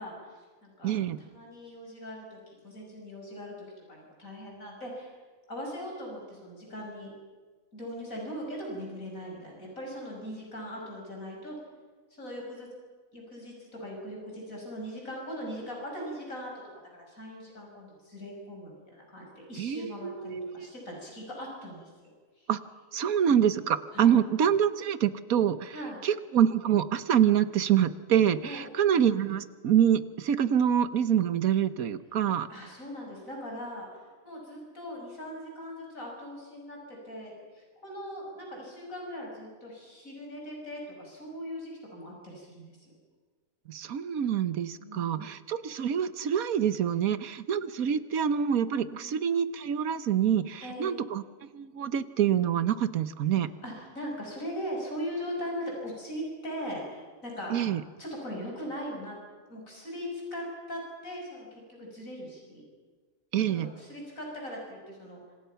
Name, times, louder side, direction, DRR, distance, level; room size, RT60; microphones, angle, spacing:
voice 1, 0.0-0.9 1.2-3.5 3.9-5.2 5.5-7.1 7.7-11.6 12.1-12.7 13.1-16.5 16.9-22.5 23.9-24.2 25.7-26.0 28.4-28.7 32.5-42.9 44.8-45.3 48.9-49.3 50.6-51.0 53.3-57.6 58.0-59.2 59.5-62.6 63.5-65.2, equal, 70° left, -1 dB, 6.6 m, -40 dB
voice 2, 0.8-1.2 19.6-20.7 22.5-22.6 22.9-25.7 26.0-32.5 43.7-51.2 51.5-53.5 57.5-57.8 63.3-63.7, right 9 dB, 85° right, 13 dB, 1.5 m, -26 dB
27.0 x 26.5 x 5.8 m, 1.4 s
omnidirectional pair, 1.5 m